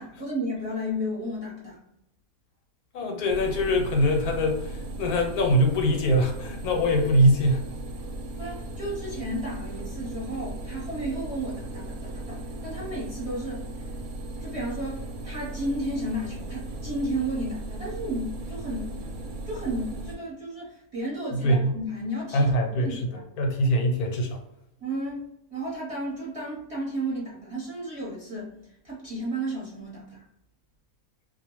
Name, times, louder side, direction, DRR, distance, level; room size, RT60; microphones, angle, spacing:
voice 1, 0.0-1.8 8.4-13.7 14.4-19.1 19.5-23.2 24.8-25.2 25.5-30.2, right 1 dB, 25° right, -7 dB, 0.9 m, -33 dB
voice 2, 2.9-7.7 21.3-21.8 22.3-24.4, equal, 80° left, 2 dB, 1.2 m, -23 dB
sound 1, 3.3-20.2, right 1 dB, 70° right, 0.9 m, -37 dB
2.4 x 2.3 x 3.0 m, 0.79 s
omnidirectional pair, 1.6 m